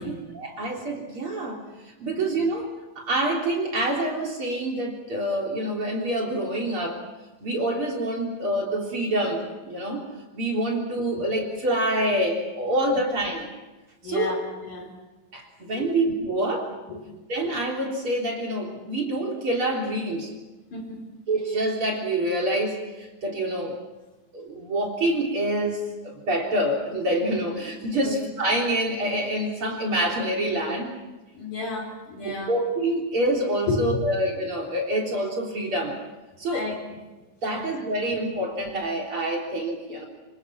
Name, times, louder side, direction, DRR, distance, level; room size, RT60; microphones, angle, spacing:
voice 1, 0.3-1.6 2.0-7.0 7.4-10.1 10.3-13.5 14.0-14.4 15.3-16.7 17.3-20.3 21.3-23.8 24.3-30.9 32.2-36.0 36.4-36.7 37.4-40.1, right 1 dB, 40° right, -1 dB, 4.3 m, -26 dB
voice 2, 14.0-14.9 15.7-16.0 16.4-16.5 16.9-17.1 20.7-21.0 28.0-28.2 31.3-32.5 33.7-34.1 36.5-36.8 37.4-37.7, left 3 dB, 65° left, 0 dB, 6.0 m, -32 dB
27.5 x 24.5 x 5.9 m, 1.2 s
omnidirectional pair, 3.9 m